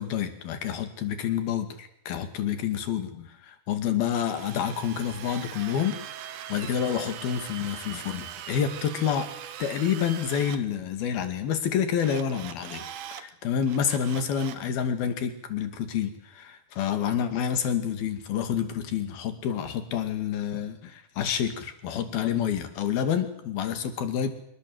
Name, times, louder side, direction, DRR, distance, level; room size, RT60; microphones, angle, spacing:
voice 1, 0.0-6.0 6.5-9.3 9.6-12.9 13.1-24.3, left 8 dB, 65° left, 9 dB, 4.1 m, -28 dB
Drill, 4.3-10.6 12.0-13.2 13.6-14.7, right 10 dB, 60° right, 2.3 m, -41 dB
25.5 x 23.5 x 7.9 m, 0.72 s
omnidirectional pair, 4.8 m